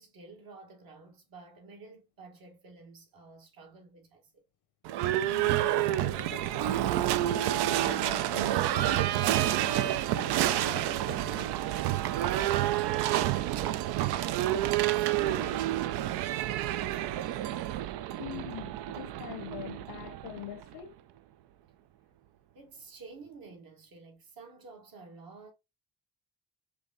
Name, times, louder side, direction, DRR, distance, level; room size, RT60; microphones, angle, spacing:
voice 1, 0.0-4.4 12.1-16.4 16.8-17.4 22.5-25.5, right 4 dB, 65° right, 1.7 m, -50 dB
voice 2, 4.9-11.5 18.2-21.0, left 11 dB, 80° left, 0.8 m, -44 dB
Livestock farm animals working animals / Bell, 4.9-20.7, right 13 dB, 85° right, 0.5 m, -29 dB
5.1 x 2.8 x 3.8 m
cardioid pair, 85°, 39 cm